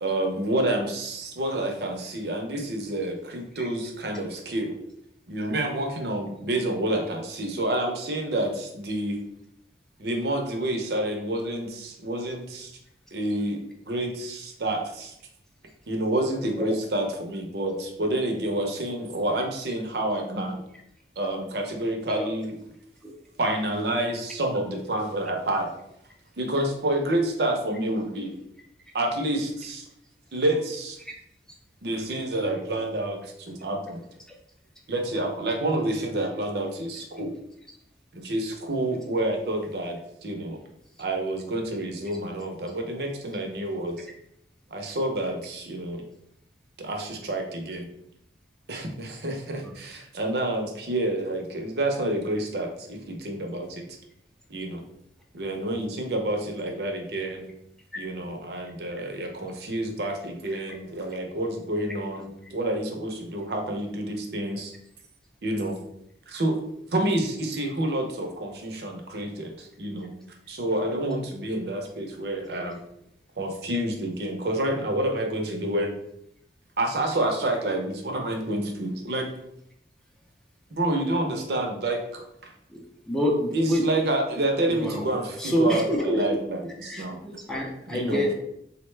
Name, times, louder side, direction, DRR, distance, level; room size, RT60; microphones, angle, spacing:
voice 1, 0.0-4.8 5.3-9.2 10.0-12.7 13.1-13.6 13.9-15.1 15.9-20.6 21.2-22.5 23.4-25.7 26.4-28.4 28.9-29.9 30.3-31.0 31.8-34.0 34.9-37.3 38.1-40.6 41.0-44.1 44.7-46.0 46.8-47.9 48.7-53.8 54.5-54.8 55.3-57.5 58.0-64.7 65.4-65.8 66.3-66.6 66.9-70.2 70.5-72.8 73.4-76.0 76.8-79.3 80.7-82.5 83.5-87.2 87.9-88.3, right 1 dB, 65° right, 3 dB, 0.6 m, -28 dB
voice 2, 82.7-83.9 84.7-85.1 85.4-86.4 86.8-88.3, equal, 5° left, -1 dB, 0.4 m, -27 dB
3.9 x 2.1 x 3.2 m, 0.77 s
head